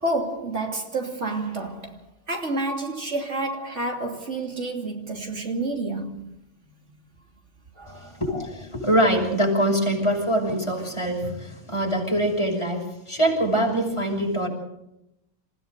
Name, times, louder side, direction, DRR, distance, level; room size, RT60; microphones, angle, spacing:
voice 1, 0.0-2.0 2.3-6.3 7.8-8.2, right 2 dB, 65° right, 3.3 m, -29 dB
voice 2, 7.9-14.5, right 1 dB, 20° left, 6.4 m, -24 dB
28.0 x 16.0 x 6.7 m
omnidirectional pair, 1.3 m